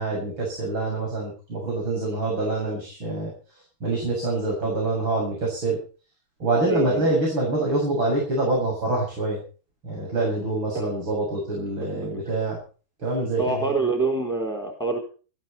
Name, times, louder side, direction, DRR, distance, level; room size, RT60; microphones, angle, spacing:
voice 1, 0.0-3.3 3.8-5.8 6.4-9.4 9.8-12.6 13.0-13.6, right 2 dB, 75° right, -2 dB, 8.4 m, -25 dB
voice 2, 6.6-7.1 10.7-10.9 11.9-12.4 13.4-15.0, right 3 dB, ahead, 1 dB, 4.0 m, -26 dB
20.0 x 14.5 x 4.5 m, 0.39 s
omnidirectional pair, 2.2 m